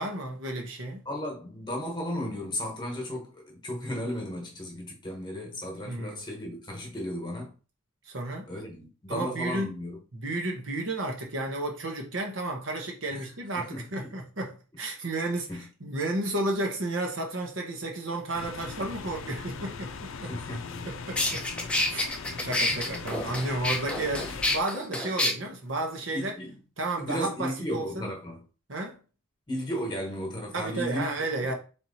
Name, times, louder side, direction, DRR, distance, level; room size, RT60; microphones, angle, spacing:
voice 1, 0.0-1.0 5.8-6.2 8.1-8.5 9.1-9.8 10.1-20.3 20.8-21.4 21.9-22.1 22.4-26.3 26.8-28.1 28.7-29.0 30.5-31.5, right 2 dB, 65° right, 1.1 m, -32 dB
voice 2, 1.0-7.5 8.5-10.0 13.1-13.3 13.5-14.1 15.5-15.7 20.2-20.9 22.7-23.1 23.6-23.8 26.1-26.6 27.0-28.4 29.5-31.1 31.4-31.5, equal, 20° left, 1.3 m, -35 dB
sound 1, 18.3-24.6, left 5 dB, 75° left, 0.5 m, -40 dB
sound 2, 20.7-20.8 21.2-25.3, left 1 dB, 5° left, 0.6 m, -28 dB
3.5 x 3.0 x 4.1 m
head